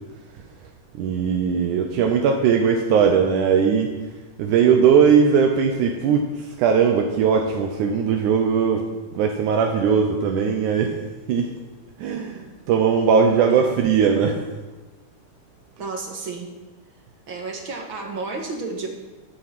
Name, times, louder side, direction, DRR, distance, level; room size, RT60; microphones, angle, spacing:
voice 1, 0.9-3.9 4.4-8.8 9.1-10.9 11.3-11.5 12.0-14.4, right 6 dB, 80° right, 3 dB, 2.3 m, -19 dB
voice 2, 15.8-16.5 17.3-18.9, right 3 dB, 50° right, 2 dB, 1.9 m, -32 dB
14.5 x 8.5 x 6.0 m, 1.2 s
omnidirectional pair, 3.6 m